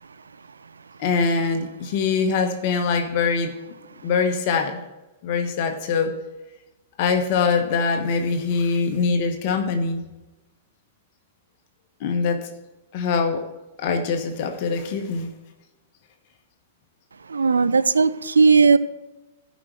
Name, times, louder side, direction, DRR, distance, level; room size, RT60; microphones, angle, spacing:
voice 1, 1.0-3.5 4.0-4.8 5.2-6.2 7.0-10.0 12.0-12.5 12.9-13.5 13.8-15.3, left 5 dB, 50° left, 5 dB, 1.1 m, -23 dB
voice 2, 17.3-18.8, right 4 dB, 80° right, 15 dB, 0.4 m, -17 dB
15.0 x 5.2 x 4.6 m, 1.0 s
figure-of-eight pair, 100°, 0 cm